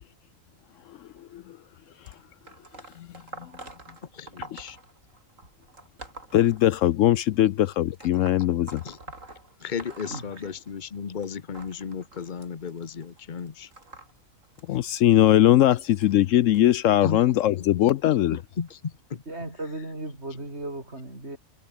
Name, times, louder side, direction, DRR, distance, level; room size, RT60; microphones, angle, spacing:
sound 1, 2.1-7.2 7.9-11.0 11.2-16.6 17.4-17.6 18.7-18.8 19.7-19.8 20.5-20.6, right 2 dB, 65° right, 5.0 m, -46 dB
voice 1, 4.1-4.8 8.8-9.0 9.6-13.7 17.0-17.2 18.3-19.2, left 6 dB, 35° left, 1.1 m, -34 dB
voice 2, 6.3-8.8 14.7-18.4, left 13 dB, 70° left, 0.9 m, -20 dB
voice 3, 10.1-10.5 19.2-21.4, right 2 dB, 50° right, 6.8 m, -36 dB
omnidirectional pair, 1.4 m